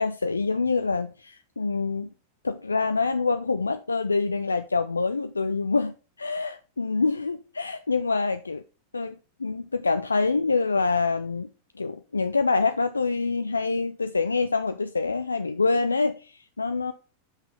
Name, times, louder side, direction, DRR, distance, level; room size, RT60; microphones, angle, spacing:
voice 1, 0.0-2.1 2.4-8.6 8.9-11.5 11.8-16.9, left 4 dB, 80° left, 0.3 m, -26 dB
5.7 x 5.6 x 4.1 m
figure-of-eight pair, 90°, 0 cm